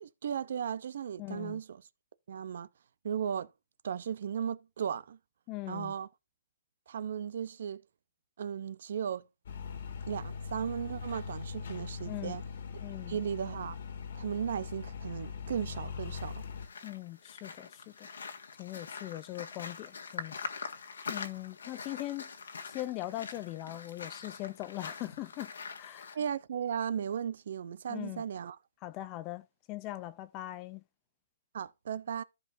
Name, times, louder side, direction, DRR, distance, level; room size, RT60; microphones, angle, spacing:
voice 1, 0.0-1.8 2.3-2.7 3.0-3.5 3.8-5.2 5.7-6.1 6.9-7.8 8.4-9.3 10.1-12.4 13.1-13.8 14.2-16.4 26.1-28.6 31.5-32.2, right 8 dB, 55° right, 0.6 m, -36 dB
voice 2, 1.2-1.6 5.5-5.9 12.1-12.4 12.8-13.2 16.8-18.1 18.6-20.3 21.1-22.3 22.6-25.5 25.8-26.2 27.9-28.2 28.8-30.8, left 16 dB, 20° left, 0.5 m, -40 dB
sound 1, 9.5-16.7, left 5 dB, 55° left, 1.8 m, -41 dB
sound 2, 16.0-26.1, left 5 dB, 85° left, 1.7 m, -44 dB
14.5 x 5.3 x 2.6 m
hypercardioid pair, 170°, 0 cm